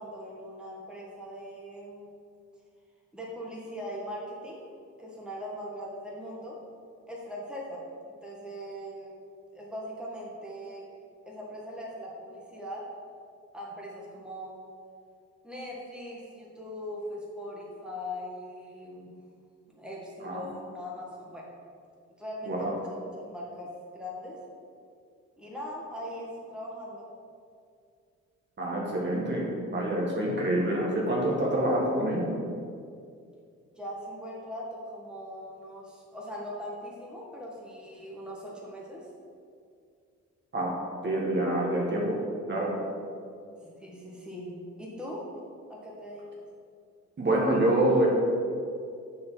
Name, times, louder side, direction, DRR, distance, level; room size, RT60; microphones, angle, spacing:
voice 1, 0.0-2.1 3.1-4.7 5.0-6.6 7.1-7.9 8.2-9.1 9.5-10.8 11.3-12.9 13.5-14.5 15.4-19.1 19.7-21.5 22.2-24.4 25.4-27.1 33.8-39.1 43.6-45.3 45.7-46.2, equal, 5° right, -4 dB, 1.6 m, -40 dB
voice 2, 22.4-22.8 28.6-32.3 40.5-40.7 41.0-42.2 42.5-42.7 47.2-48.1, right 1 dB, 35° right, -3 dB, 1.4 m, -26 dB
6.6 x 4.2 x 5.5 m, 2.3 s
cardioid pair, 90°, 30 cm